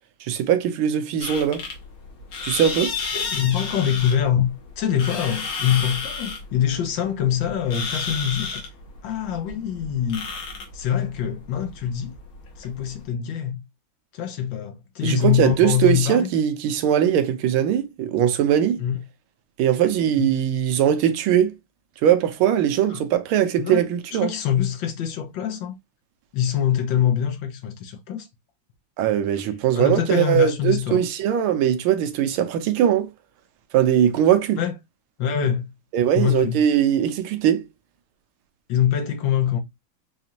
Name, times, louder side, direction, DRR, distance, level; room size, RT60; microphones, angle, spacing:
voice 1, 0.2-1.6 2.4-2.9 15.0-18.8 19.6-21.5 22.0-24.3 29.0-33.1 33.7-34.6 35.9-37.6, right 10 dB, 85° right, 1.5 m, -20 dB
sound 1, 1.2-13.0, left 4 dB, 90° left, 2.0 m, -32 dB
voice 2, 3.1-8.5 9.0-10.3 10.7-12.1 12.6-13.6 14.1-16.3 18.8-19.0 20.2-20.3 22.9-23.0 23.6-25.7 26.3-28.3 29.3-29.4 29.7-31.0 34.6-34.7 35.2-35.7 36.1-36.6 38.7-39.6, left 9 dB, 70° left, 1.5 m, -24 dB
4.9 x 2.5 x 2.8 m
omnidirectional pair, 2.2 m